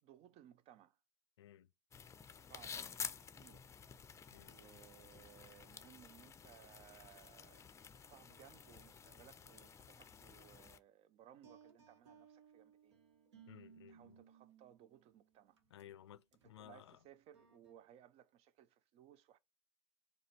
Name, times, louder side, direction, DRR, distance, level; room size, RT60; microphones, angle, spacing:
voice 1, 0.0-1.0 2.5-3.7 4.5-13.0 13.9-15.6 16.4-19.4, right 11 dB, 45° right, 0.5 m, -63 dB
voice 2, 1.4-1.7 4.3-4.8 13.5-14.2 15.7-17.0, left 11 dB, 75° left, 0.4 m, -58 dB
sound 1, 1.9-10.8, left 6 dB, 20° left, 0.5 m, -51 dB
sound 2, 11.4-15.0 15.6-15.8 16.3-16.6 17.3-17.7, right 7 dB, 75° right, 1.1 m, -62 dB
4.9 x 2.3 x 4.4 m
figure-of-eight pair, 80°, 15 cm